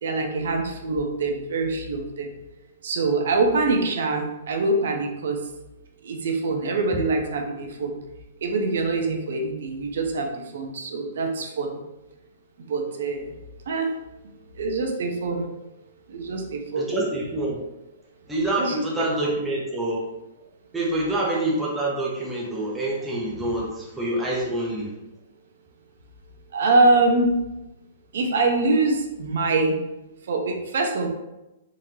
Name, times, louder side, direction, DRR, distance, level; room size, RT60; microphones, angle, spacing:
voice 1, 0.0-2.3 2.8-5.5 6.0-8.0 8.4-11.8 12.7-13.3 13.7-13.9 14.6-15.5 16.1-16.9 18.6-18.8 19.2-19.3 26.5-27.3 28.1-29.8 30.3-31.1, right 3 dB, 60° right, 3 dB, 0.6 m, -24 dB
voice 2, 16.8-17.6 18.3-20.0 20.7-24.9, right 1 dB, 5° right, -5 dB, 0.4 m, -26 dB
3.7 x 3.1 x 2.7 m, 0.96 s
hypercardioid pair, 180°, 0 cm